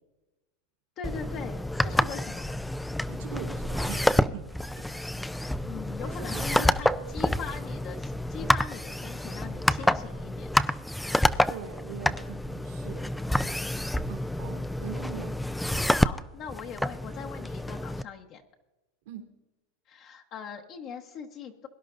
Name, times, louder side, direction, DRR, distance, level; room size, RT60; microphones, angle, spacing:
voice 1, 1.0-2.6 5.6-10.5 15.9-18.4 19.9-21.7, left 6 dB, 45° left, 2 dB, 1.1 m, -41 dB
sound 1, 1.0-18.0, left 1 dB, 5° left, 0.4 m, -28 dB
voice 2, 3.1-4.4 6.0-7.2 11.5-13.1 14.1-15.4 19.0-19.2, right 9 dB, 75° right, 1 dB, 3.0 m, -41 dB
22.5 x 11.0 x 2.6 m, 1.1 s
supercardioid pair, 120°, 0 cm